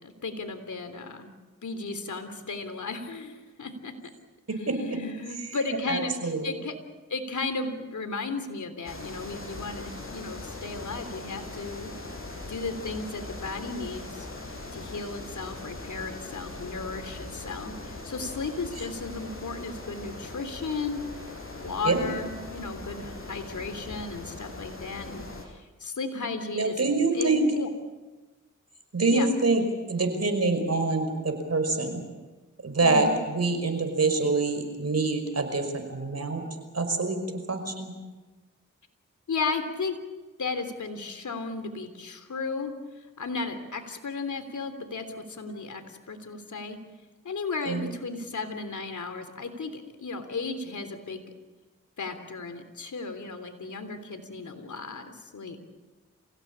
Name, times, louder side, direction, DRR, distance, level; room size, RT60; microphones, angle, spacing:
voice 1, 0.0-1.3 1.6-3.9 4.5-6.7 7.1-12.0 12.5-14.3 14.7-21.0 21.6-25.2 25.5-27.7 29.1-29.3 32.8-33.2 39.3-40.0 40.4-42.7 43.2-46.8 47.2-51.3 52.0-55.6, left 4 dB, 70° left, 8 dB, 3.4 m, -35 dB
voice 2, 5.9-6.5 21.8-22.1 26.6-27.5 28.9-29.6 29.9-32.0 32.6-36.4 36.7-37.2 37.5-37.9 47.7-47.9, right 3 dB, 55° right, 6 dB, 5.6 m, -25 dB
sound 1, 8.9-25.5, left 2 dB, 45° left, 6.7 m, -40 dB
27.0 x 17.0 x 8.7 m, 1.2 s
cardioid pair, 45°, 31 cm